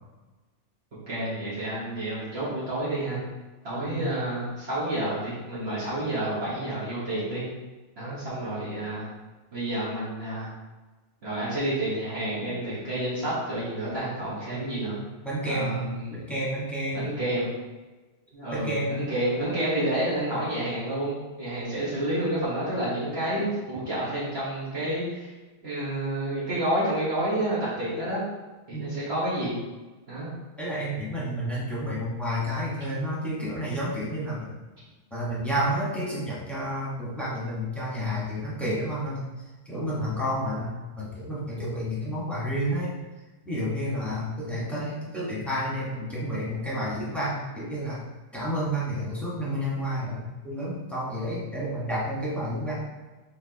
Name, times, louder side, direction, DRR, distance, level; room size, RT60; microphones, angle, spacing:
voice 1, 1.1-3.2 3.6-7.4 8.0-9.0 9.5-10.5 11.2-15.0 15.4-16.2 16.9-17.5 18.3-25.3 25.6-28.2 28.7-29.6 30.1-30.3, right 1 dB, 60° right, -10 dB, 1.6 m, -29 dB
voice 2, 15.2-17.2 18.5-19.0 28.7-28.9 30.6-34.5 35.1-39.2 39.6-42.9 43.4-48.0 48.3-52.8, equal, ahead, -8 dB, 1.2 m, -30 dB
4.5 x 3.9 x 2.9 m, 1.2 s
omnidirectional pair, 1.2 m